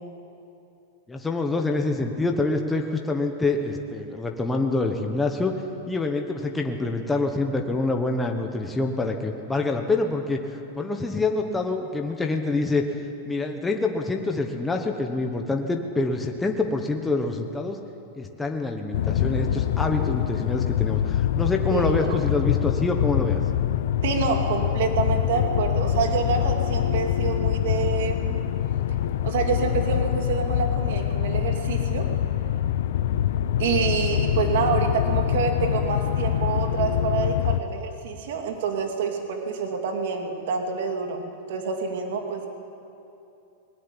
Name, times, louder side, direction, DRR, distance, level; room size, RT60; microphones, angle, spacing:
voice 1, 1.1-5.5 5.9-12.8 13.2-17.8 18.1-23.4, left 3 dB, 5° left, 2 dB, 1.1 m, -26 dB
sound 1, 18.9-37.6, left 10 dB, 65° left, 0.8 m, -25 dB
voice 2, 21.7-22.2 24.0-28.4 29.2-32.1 33.6-42.5, right 5 dB, 65° right, 3 dB, 2.8 m, -27 dB
20.5 x 17.0 x 9.9 m, 2.7 s
supercardioid pair, 165°, 0 cm